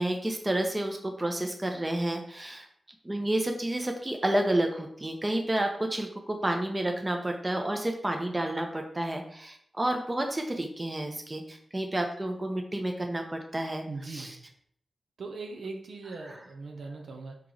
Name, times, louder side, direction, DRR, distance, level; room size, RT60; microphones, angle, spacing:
voice 1, 0.0-2.7 3.0-14.4 16.2-16.4, right 1 dB, 25° right, 4 dB, 0.7 m, -30 dB
voice 2, 13.9-14.3 15.2-17.4, right 3 dB, 85° right, 2 dB, 0.6 m, -40 dB
4.6 x 3.0 x 3.8 m, 0.66 s
cardioid pair, 60°, 0 cm